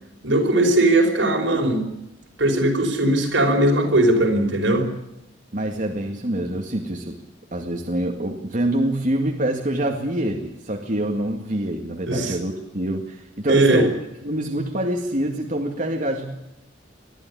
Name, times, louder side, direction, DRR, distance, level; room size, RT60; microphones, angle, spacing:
voice 1, 0.2-1.8 2.4-4.9 12.1-12.4 13.5-13.8, right 1 dB, 80° right, 2 dB, 5.1 m, -19 dB
voice 2, 5.5-7.2 7.5-13.9 14.2-16.3, right 1 dB, 45° right, 2 dB, 2.0 m, -25 dB
21.5 x 13.0 x 9.9 m, 0.90 s
head